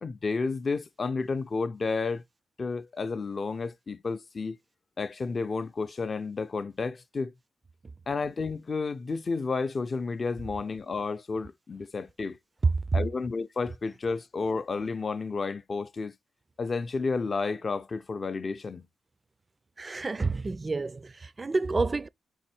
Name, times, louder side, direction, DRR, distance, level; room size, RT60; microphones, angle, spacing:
voice 1, 0.0-2.2 2.6-4.6 5.0-7.3 8.1-12.4 12.9-16.1 16.6-18.9, left 4 dB, 45° left, 0.4 m, -31 dB
voice 2, 19.8-22.1, right 3 dB, 35° right, 0.3 m, -28 dB
4.2 x 2.7 x 4.3 m
cardioid pair, 60°, 0 cm